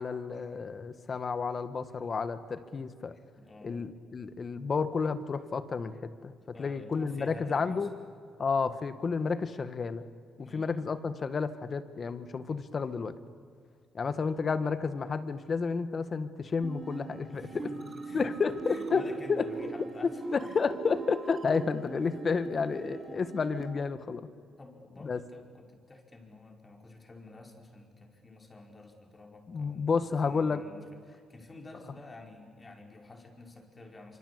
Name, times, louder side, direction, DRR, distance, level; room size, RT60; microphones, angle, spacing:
voice 1, 0.0-3.1 3.6-6.3 6.6-7.9 8.4-10.1 10.4-13.2 13.9-17.7 18.1-19.4 20.3-24.3 25.0-25.2 29.5-30.6, left 5 dB, 40° left, 11 dB, 1.8 m, -31 dB
voice 2, 3.4-3.8 6.5-7.9 10.4-10.7 14.2-14.3 17.3-20.6 22.0-22.1 24.6-34.2, left 2 dB, 25° left, 2 dB, 5.2 m, -50 dB
sound 1, 16.6-23.7, right 4 dB, 30° right, 3.6 m, -41 dB
25.5 x 25.5 x 8.7 m, 2.1 s
cardioid pair, 90°, 0 cm